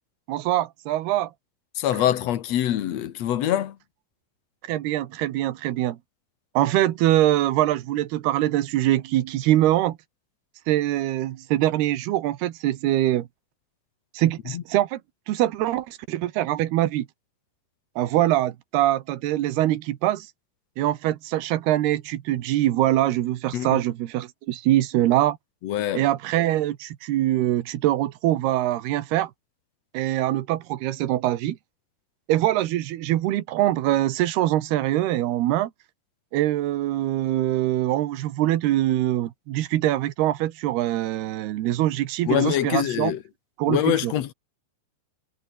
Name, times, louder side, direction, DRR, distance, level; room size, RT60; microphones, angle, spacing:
voice 1, 0.3-1.3 4.6-6.0 6.5-10.0 10.7-13.3 14.1-15.0 15.3-17.1 18.0-20.3 20.8-25.4 25.9-29.3 29.9-31.6 32.3-35.7 36.3-43.1 43.6-44.1, right 14 dB, 85° right, 3.3 m, -23 dB
voice 2, 1.7-3.8 14.5-14.6 23.5-23.8 25.6-26.1 42.3-43.2 43.7-44.3, left 11 dB, 60° left, 1.9 m, -24 dB
omnidirectional pair, 4.5 m